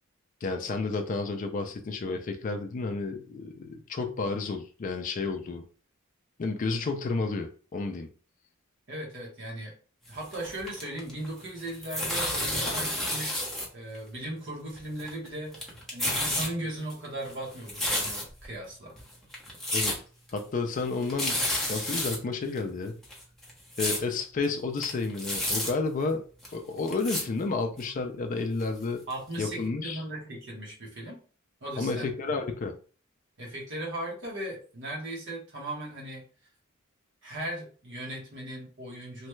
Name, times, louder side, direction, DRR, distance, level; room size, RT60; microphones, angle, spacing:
voice 1, 0.4-5.6 6.4-8.1 12.7-12.8 19.7-19.9 20.3-23.0 23.8-26.2 26.5-29.0 29.4-30.0 31.8-32.7, left 3 dB, 40° left, 0.4 m, -31 dB
voice 2, 8.9-9.7 10.1-13.4 13.7-18.9 29.1-31.2 31.6-32.1 33.4-36.3 37.2-39.3, right 1 dB, 60° right, 1.2 m, -37 dB
sound 1, 10.1-11.3 11.6-13.7 13.9-14.0 14.8-15.3 15.5-16.5 16.9-18.5 19.0-19.1 19.3-20.0 20.3-20.4 20.7-20.8 21.0-22.2 22.6-22.7 23.0-24.0 24.4-24.5 24.7-25.7 26.4-26.5 26.9-27.2 27.8-27.9 28.6-28.7 29.1-29.2 29.5-29.6, left 1 dB, ahead, 0.8 m, -30 dB
3.1 x 2.2 x 3.0 m
head